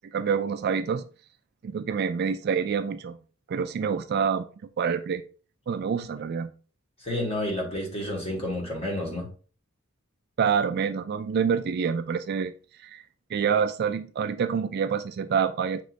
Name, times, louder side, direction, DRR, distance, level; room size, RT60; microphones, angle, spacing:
voice 1, 0.1-1.0 1.6-3.2 3.5-4.4 4.8-5.2 5.7-6.5 10.4-12.5 12.8-13.0 13.3-15.8, right 6 dB, 50° right, 10 dB, 0.3 m, -27 dB
voice 2, 7.0-9.3, left 1 dB, 30° left, -2 dB, 1.8 m, -30 dB
6.2 x 3.0 x 2.5 m, 0.38 s
head